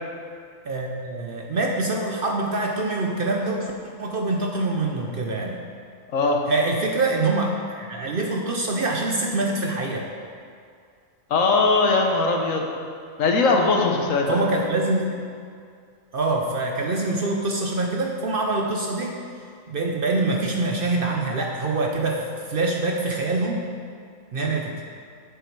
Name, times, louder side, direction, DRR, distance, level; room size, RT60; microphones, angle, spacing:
voice 1, 0.6-3.7 4.0-5.6 6.5-10.1 14.3-15.2 16.1-19.1 19.7-22.2 22.5-23.6 24.3-24.8, right 2 dB, 50° right, 1 dB, 0.7 m, -25 dB
voice 2, 6.1-6.4 11.3-12.7 13.2-14.4 24.4-24.5, left 3 dB, 75° left, 2 dB, 1.3 m, -20 dB
7.3 x 7.1 x 4.6 m, 2.3 s
omnidirectional pair, 1.4 m